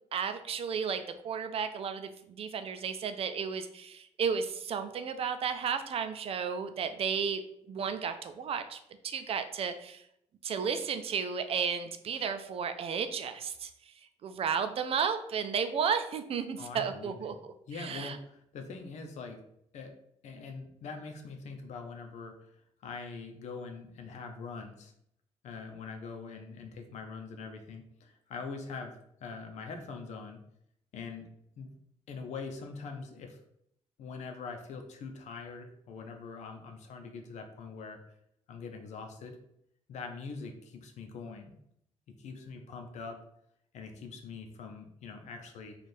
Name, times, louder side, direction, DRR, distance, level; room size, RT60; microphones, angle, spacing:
voice 1, 0.1-7.4 7.7-8.8 9.0-10.0 10.4-13.7 14.2-17.4 17.8-18.2, right 6 dB, 55° right, 9 dB, 0.4 m, -33 dB
voice 2, 16.6-17.4 17.7-19.4 19.7-19.9 20.2-22.4 22.8-24.9 25.4-30.4 30.9-31.3 31.6-31.8 32.1-33.4 34.0-38.0 38.5-39.4 39.9-41.5 42.1-43.2 43.7-45.8, left 4 dB, 80° left, 4 dB, 0.6 m, -43 dB
3.3 x 2.4 x 4.2 m, 0.73 s
cardioid pair, 95°, 12 cm